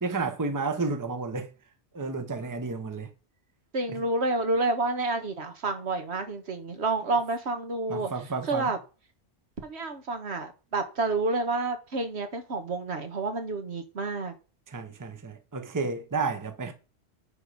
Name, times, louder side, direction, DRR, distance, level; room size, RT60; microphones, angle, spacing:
voice 1, 0.0-1.5 1.9-3.1 7.9-8.7 14.7-16.7, right 4 dB, 20° right, 0.9 m, -31 dB
voice 2, 3.7-8.1 8.4-8.8 9.6-14.3, right 3 dB, 65° right, 1.6 m, -29 dB
9.8 x 3.9 x 4.9 m
omnidirectional pair, 1.2 m